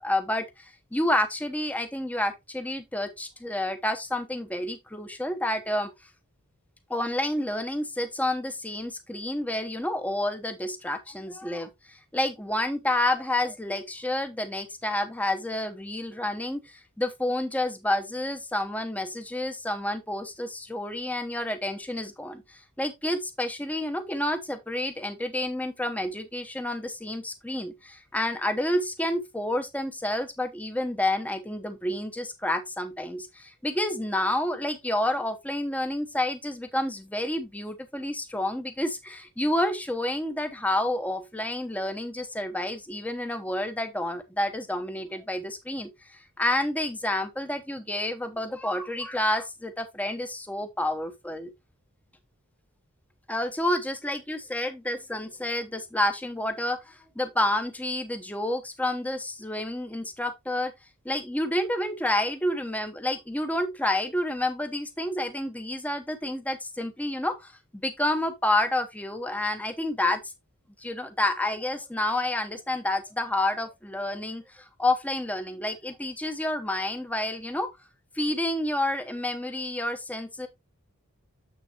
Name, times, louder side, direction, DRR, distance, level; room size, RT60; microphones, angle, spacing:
voice 1, 0.0-5.9 6.9-51.5 53.3-60.7 61.0-70.3 70.8-77.7 78.1-80.5, left 1 dB, 5° left, 0.9 m, -29 dB
7.6 x 6.5 x 2.9 m
head